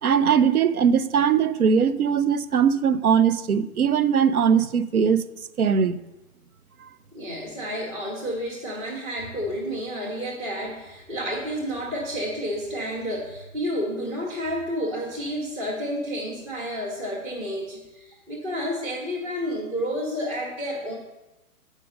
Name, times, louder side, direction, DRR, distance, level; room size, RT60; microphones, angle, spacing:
voice 1, 0.0-5.2 5.6-6.0, right 7 dB, 90° right, 0.6 m, -20 dB
voice 2, 7.1-21.0, equal, 10° right, 0.5 m, -30 dB
6.5 x 4.9 x 5.3 m
figure-of-eight pair, 130°, 43 cm